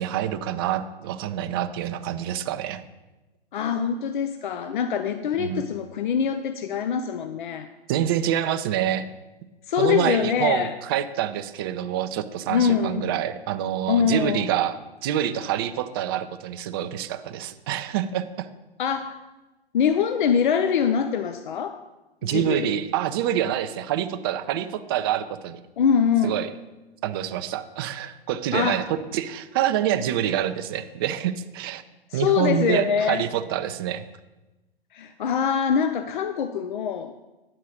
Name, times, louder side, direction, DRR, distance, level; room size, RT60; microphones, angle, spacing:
voice 1, 0.0-2.8 5.4-5.7 7.9-9.0 9.8-18.5 22.2-25.6 26.2-26.5 27.0-31.8 32.1-34.0, right 11 dB, 25° right, 9 dB, 0.4 m, -26 dB
voice 2, 3.5-7.7 9.7-10.7 12.5-13.1 13.9-14.5 18.8-19.2 19.7-21.8 22.2-22.7 25.8-26.4 28.5-28.9 32.1-33.3 34.9-37.1, left 7 dB, 50° left, 9 dB, 0.6 m, -24 dB
9.8 x 4.6 x 6.3 m, 1.1 s
figure-of-eight pair, 120°, 31 cm